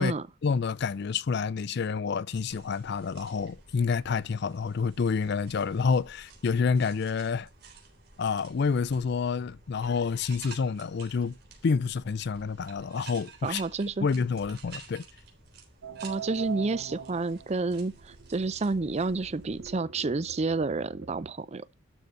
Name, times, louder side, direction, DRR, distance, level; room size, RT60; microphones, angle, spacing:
voice 1, 0.4-7.5 8.2-11.3 11.6-13.6 14.0-15.1, left 5 dB, 55° left, 0.4 m, -28 dB
sound 1, 2.5-19.7, right 4 dB, 50° right, 3.5 m, -51 dB
voice 2, 13.4-14.1 16.0-21.7, right 3 dB, 35° right, 0.5 m, -30 dB
sound 2, 15.8-21.3, right 7 dB, 85° right, 0.7 m, -43 dB
12.0 x 4.0 x 4.5 m
head